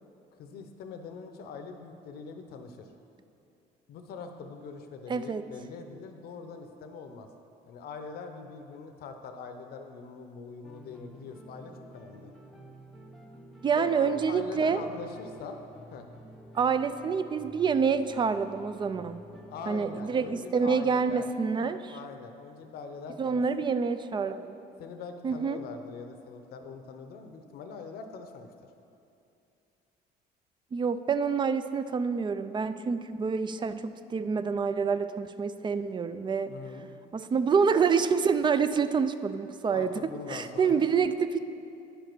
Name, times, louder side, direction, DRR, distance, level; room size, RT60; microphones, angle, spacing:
voice 1, 0.4-2.9 3.9-7.3 7.7-12.3 13.8-15.6 15.9-16.1 19.5-23.4 24.8-28.5 36.5-36.9 39.7-40.9, left 5 dB, 65° left, 6 dB, 0.7 m, -43 dB
voice 2, 5.1-5.5 13.6-14.8 16.5-19.2 19.7-22.0 23.2-24.6 25.2-25.6 30.7-36.5 37.1-41.4, right 5 dB, 25° right, 12 dB, 0.4 m, -27 dB
sound 1, 10.6-20.4, right 1 dB, ahead, 0.8 m, -51 dB
10.0 x 5.1 x 6.0 m, 2.6 s
cardioid pair, 110°, 17 cm